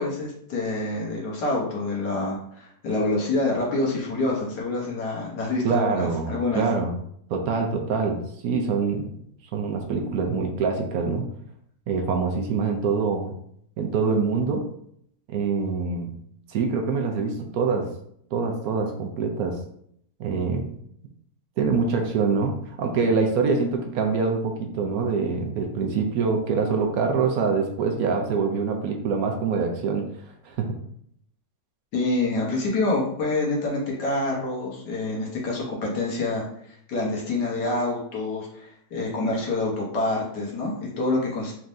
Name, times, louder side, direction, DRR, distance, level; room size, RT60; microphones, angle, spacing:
voice 1, 0.0-6.6 31.9-36.4 36.9-41.5, left 2 dB, 85° left, -3 dB, 1.6 m, -27 dB
voice 2, 5.6-6.9 7.3-9.1 9.5-11.2 11.9-13.3 13.8-14.6 15.3-16.1 16.5-17.9 18.3-19.6 20.2-20.7 21.6-30.0 30.4-30.7, right 5 dB, 70° right, 3 dB, 1.0 m, -25 dB
4.2 x 3.5 x 2.6 m, 0.69 s
omnidirectional pair, 1.7 m